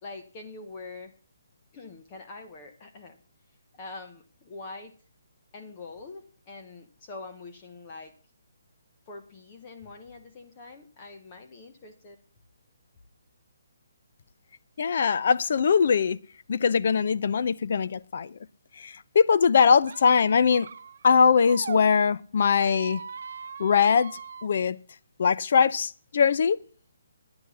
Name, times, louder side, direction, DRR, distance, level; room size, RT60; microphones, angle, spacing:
voice 1, 0.0-1.1 1.7-3.2 3.7-4.9 5.5-8.1 9.1-12.2, left 3 dB, 20° left, 0.9 m, -44 dB
voice 2, 14.8-16.2 16.5-18.3 18.8-20.7 21.0-23.0 23.6-24.8 25.2-26.6, left 6 dB, 40° left, 0.5 m, -22 dB
Squeak, 19.8-21.8 22.4-24.5, right 6 dB, 45° right, 0.7 m, -40 dB
10.5 x 9.6 x 6.0 m
hypercardioid pair, 175°, 0 cm